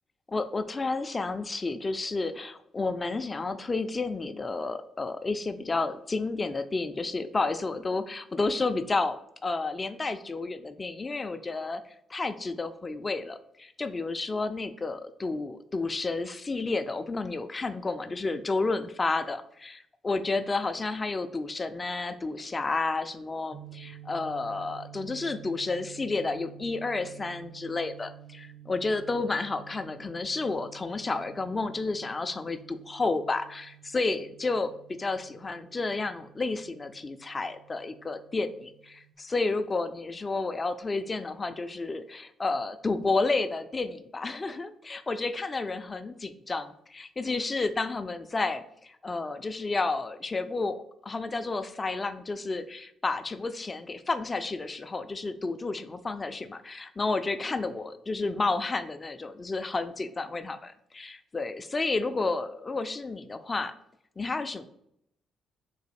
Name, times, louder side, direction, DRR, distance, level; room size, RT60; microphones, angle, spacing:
voice 1, 0.3-9.2 9.4-11.8 12.1-34.7 35.0-63.7 64.2-64.6, left 3 dB, 25° left, 10 dB, 0.4 m, -31 dB
sound 1, 23.5-39.1, right 12 dB, 45° right, 0.6 m, -51 dB
3.9 x 2.7 x 4.2 m, 0.73 s
cardioid pair, 90°, 0 cm